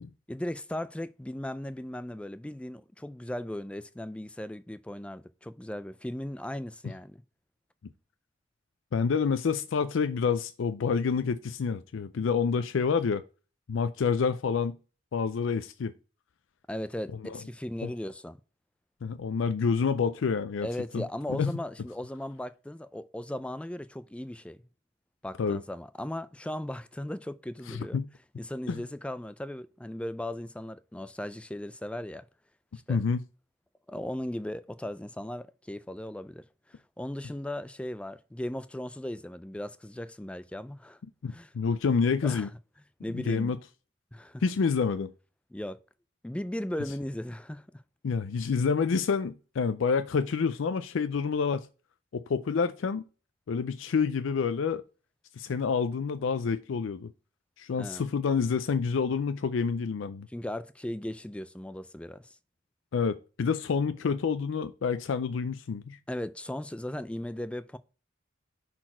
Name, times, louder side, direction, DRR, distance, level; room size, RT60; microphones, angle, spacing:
voice 1, 0.3-7.2 16.7-18.4 20.6-24.6 25.2-28.0 28.4-32.3 32.9-33.0 33.9-41.0 41.3-41.5 42.2-42.5 43.0-43.5 44.1-44.4 45.5-45.8 46.2-47.7 57.8-58.1 60.3-62.4 66.1-67.8, left 1 dB, 5° left, 0.3 m, -37 dB
voice 2, 8.9-13.2 13.7-14.8 15.1-15.9 17.3-17.4 17.8-17.9 19.0-20.7 20.9-21.0 21.3-21.5 25.4-25.6 27.7-28.1 28.7-28.8 32.9-33.2 41.2-42.5 43.1-43.6 44.4-45.1 48.0-51.7 52.1-53.0 53.5-54.8 55.4-57.1 57.6-60.3 62.9-66.0, left 5 dB, 75° left, 0.4 m, -28 dB
5.9 x 4.2 x 4.4 m
head